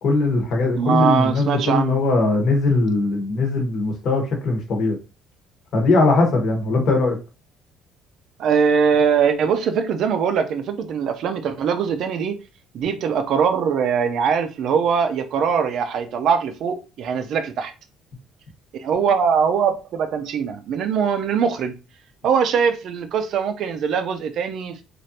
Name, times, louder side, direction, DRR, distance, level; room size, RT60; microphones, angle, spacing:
voice 1, 0.0-5.0 5.7-7.2, left 3 dB, 45° left, 1.0 m, -20 dB
voice 2, 0.8-2.0 8.4-12.4 12.7-17.7 18.8-21.8 22.2-24.8, right 6 dB, 50° right, 0.4 m, -21 dB
3.2 x 2.4 x 2.8 m
cardioid pair, 170°, 0 cm